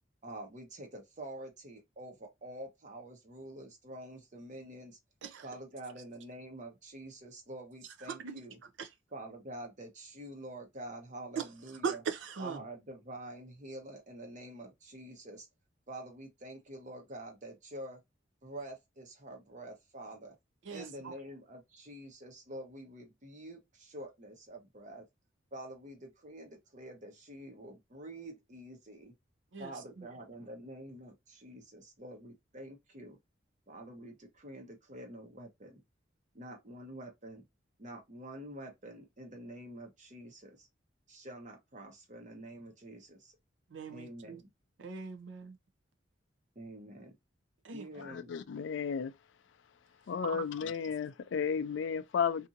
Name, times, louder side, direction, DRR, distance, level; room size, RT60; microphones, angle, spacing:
voice 1, 0.2-5.0 5.4-8.6 9.1-12.0 12.4-15.5 15.9-18.0 18.4-20.3 20.7-25.1 25.5-29.1 29.6-33.2 33.7-35.8 36.3-37.4 37.8-40.7 41.1-43.3 43.9-44.5 46.6-47.1 47.7-48.3 50.6-50.7, right 1 dB, 40° right, 0.9 m, -47 dB
voice 2, 8.0-8.9 11.4-11.5 11.8-12.6 20.6-21.1 29.5-30.1 43.7-44.4 44.8-45.6 47.6-47.8 50.3-50.4, right 5 dB, 80° right, 0.6 m, -40 dB
voice 3, 48.0-49.1 50.1-52.5, left 6 dB, 70° left, 0.4 m, -33 dB
2.7 x 2.6 x 2.5 m
head